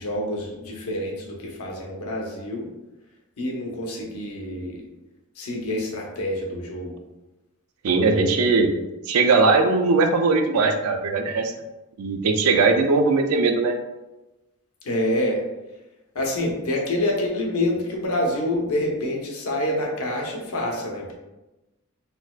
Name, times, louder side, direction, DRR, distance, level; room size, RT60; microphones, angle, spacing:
voice 1, 0.0-2.7 3.4-4.8 5.4-7.0 14.8-15.4 16.1-21.1, left 1 dB, 85° left, -1 dB, 0.8 m, -27 dB
voice 2, 7.8-8.7 9.1-11.5 12.0-13.8, right 3 dB, 85° right, 5 dB, 0.4 m, -19 dB
4.0 x 2.2 x 2.3 m, 1.0 s
head